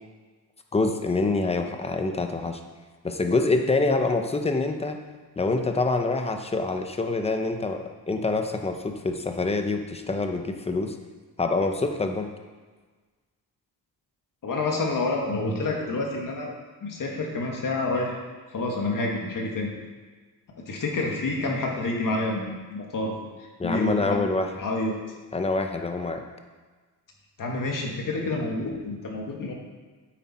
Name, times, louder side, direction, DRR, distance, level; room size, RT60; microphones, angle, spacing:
voice 1, 0.7-2.6 3.0-5.0 5.4-11.0 11.4-12.3 23.6-24.5 25.3-26.2, left 3 dB, 15° left, 5 dB, 0.7 m, -26 dB
voice 2, 14.4-16.5 16.8-18.2 18.5-19.7 20.7-23.2 23.6-24.2 24.6-25.0 27.4-29.5, left 2 dB, 55° left, 0 dB, 1.8 m, -28 dB
9.6 x 8.5 x 4.3 m, 1.4 s
wide cardioid pair, 155°, 40 cm